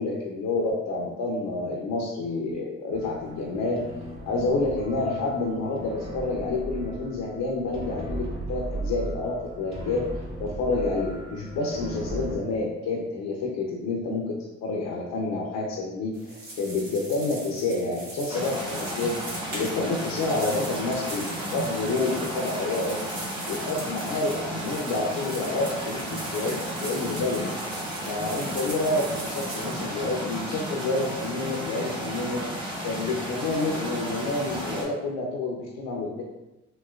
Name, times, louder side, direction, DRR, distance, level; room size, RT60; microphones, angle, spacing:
voice 1, 0.0-3.8 4.3-10.1 10.4-14.4 14.6-19.2 19.5-23.0 23.5-27.5 28.0-32.4 32.8-36.2, left 3 dB, 75° left, -3 dB, 0.6 m, -28 dB
sound 1, 2.9-12.4, right 1 dB, 35° right, 1.4 m, -37 dB
sound 2, 16.1-29.8, right 1 dB, 70° right, 1.3 m, -40 dB
sound 3, 18.3-34.8, equal, 15° right, 0.9 m, -33 dB
3.0 x 2.8 x 2.4 m, 1.0 s
cardioid pair, 90°, 30 cm